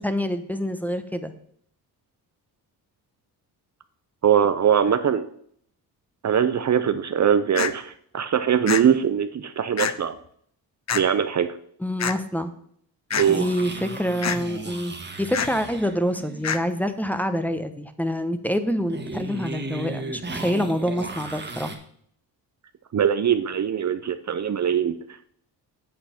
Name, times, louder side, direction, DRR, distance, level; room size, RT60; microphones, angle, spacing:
voice 1, 0.0-1.3 11.8-12.5 13.3-21.7, equal, 5° left, 9 dB, 1.0 m, -26 dB
voice 2, 4.2-5.3 6.2-10.2 10.9-11.6 13.2-13.4 22.9-25.0, right 8 dB, 45° right, 10 dB, 0.6 m, -22 dB
sound 1, 7.5-7.7 8.7-8.8 9.8-9.9 10.9-11.0 12.0-12.1 13.1-13.3 14.2-14.4 15.3-15.5 16.4-16.6, left 8 dB, 40° left, 0.7 m, -25 dB
sound 2, 13.1-16.5 18.9-21.8, right 2 dB, 25° right, 1.6 m, -35 dB
8.6 x 7.8 x 4.4 m, 0.64 s
cardioid pair, 75°, 41 cm